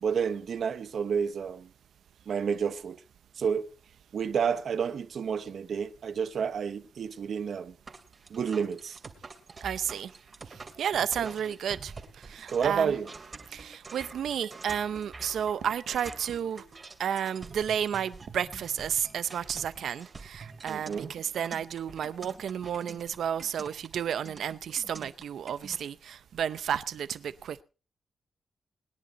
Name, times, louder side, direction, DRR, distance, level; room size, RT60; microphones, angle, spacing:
voice 1, 0.0-1.7 2.3-3.0 3.4-3.7 4.1-7.7 8.3-9.0 11.2-11.3 12.5-13.1 20.7-21.1, right 6 dB, 70° right, 1.0 m, -30 dB
sound 1, 7.9-25.8, right 4 dB, 40° right, 2.5 m, -47 dB
voice 2, 9.6-10.1 10.5-12.9 13.5-16.6 17.0-27.6, right 8 dB, 90° right, 0.6 m, -32 dB
20.5 x 10.5 x 4.1 m
wide cardioid pair, 115°, 0 cm